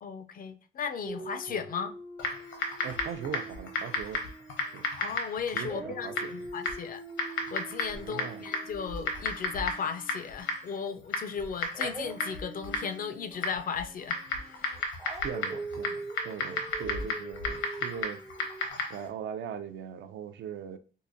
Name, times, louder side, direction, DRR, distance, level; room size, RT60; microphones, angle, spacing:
voice 1, 0.0-1.9 2.6-2.7 5.0-14.2 14.5-14.7, left 6 dB, 45° left, 0.4 m, -36 dB
Dog, 1.1-5.2 5.6-10.6 11.7-18.7, right 2 dB, 10° right, 0.4 m, -44 dB
Typing, 2.2-19.1, left 3 dB, 75° left, 1.0 m, -35 dB
voice 2, 2.8-4.3 4.7-4.9 5.5-6.5 8.0-8.5 15.2-18.2 18.9-20.8, right 8 dB, 70° right, 0.5 m, -40 dB
4.6 x 2.1 x 2.6 m
cardioid pair, 90°, 20 cm